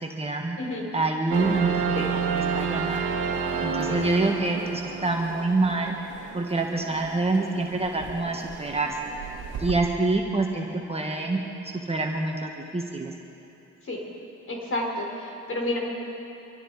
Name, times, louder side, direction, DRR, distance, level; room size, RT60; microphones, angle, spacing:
voice 1, 0.0-0.6 0.9-3.0 3.6-5.9 6.3-9.0 9.6-11.4 11.9-13.1, right 2 dB, 20° right, 0 dB, 1.5 m, -26 dB
sound 1, 1.3-9.8, right 6 dB, 75° right, 1.5 m, -31 dB
voice 2, 14.5-15.8, left 1 dB, 45° left, -2 dB, 4.6 m, -30 dB
25.0 x 13.5 x 4.2 m, 3.0 s
cardioid pair, 90°, 30 cm